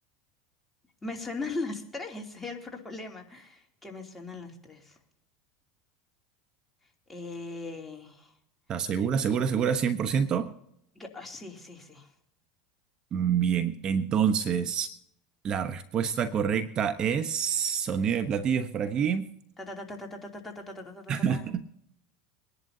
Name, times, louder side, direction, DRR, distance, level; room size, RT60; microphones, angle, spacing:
voice 1, 1.0-5.0 7.1-8.3 11.0-12.1 19.6-21.5, left 3 dB, 10° left, 1 dB, 2.7 m, -39 dB
voice 2, 8.7-10.5 13.1-14.9 15.4-19.3 21.1-21.7, right 7 dB, 40° right, 10 dB, 0.8 m, -27 dB
23.0 x 11.0 x 2.7 m, 0.73 s
hypercardioid pair, 100°, 2 cm